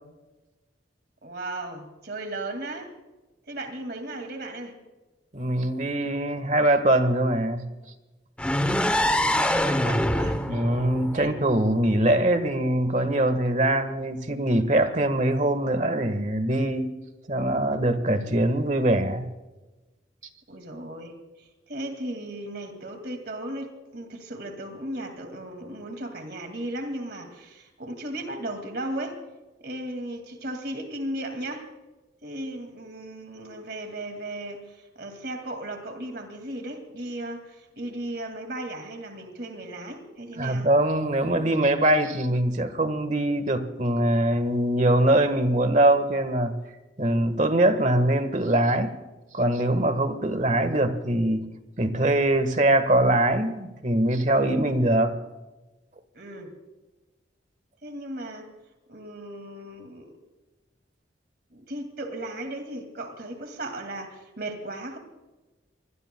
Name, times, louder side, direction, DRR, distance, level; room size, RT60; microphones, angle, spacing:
voice 1, 1.2-2.9 3.5-4.7 8.9-10.4 11.1-11.3 20.5-29.2 29.6-31.7 32.2-40.7 56.1-56.5 57.8-58.5 58.9-60.1 61.5-65.0, right 1 dB, 60° right, 2.2 m, -36 dB
voice 2, 5.3-7.7 10.5-16.9 17.3-19.3 40.4-46.5 47.0-48.9 49.3-51.5 51.8-55.2, right 1 dB, 40° right, 1.5 m, -23 dB
sound 1, 8.4-12.2, left 1 dB, 5° left, 0.8 m, -25 dB
26.5 x 21.0 x 2.3 m
head